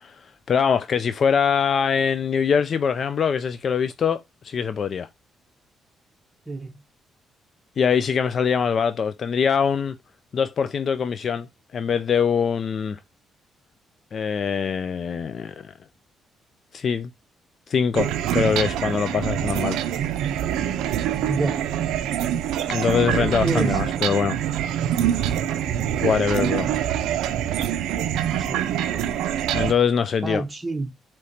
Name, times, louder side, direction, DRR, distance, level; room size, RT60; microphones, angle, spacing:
voice 1, 0.0-5.1 7.8-10.0 10.3-11.5 11.7-13.0 14.1-15.7 16.7-17.1 17.7-19.8 22.7-24.4 26.0-26.7 29.5-30.4, left 6 dB, 50° left, 0.3 m, -23 dB
sound 1, 17.9-29.7, right 10 dB, 90° right, 0.4 m, -25 dB
voice 2, 21.3-21.6 23.4-23.9 28.5-28.6 30.2-30.9, right 3 dB, 15° right, 1.1 m, -27 dB
4.8 x 2.9 x 2.7 m
cardioid pair, 90°, 0 cm